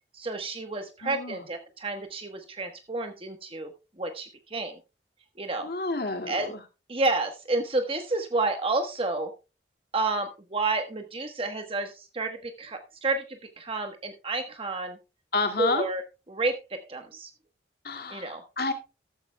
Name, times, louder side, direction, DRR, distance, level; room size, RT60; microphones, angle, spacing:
voice 1, 0.1-3.7 4.0-4.7 5.4-5.7 6.3-6.5 6.9-9.3 9.9-13.2 13.6-15.0 15.6-16.0 16.3-17.3 18.1-18.4, right 3 dB, 30° right, 5 dB, 1.2 m, -30 dB
voice 2, 1.0-1.4 5.6-6.5 15.3-15.9 17.8-18.7, left 3 dB, 60° left, 5 dB, 2.2 m, -30 dB
14.0 x 14.0 x 2.3 m, 0.29 s
head